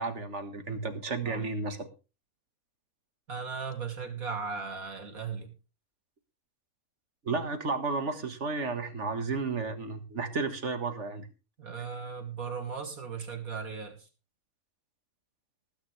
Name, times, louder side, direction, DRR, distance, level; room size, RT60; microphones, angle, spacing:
voice 1, 0.0-1.9 7.2-11.3, right 4 dB, 55° right, 8 dB, 1.8 m, -32 dB
voice 2, 3.3-5.5 11.6-14.1, right 5 dB, 75° right, 3 dB, 3.1 m, -37 dB
19.0 x 9.7 x 3.3 m, 0.33 s
omnidirectional pair, 1.5 m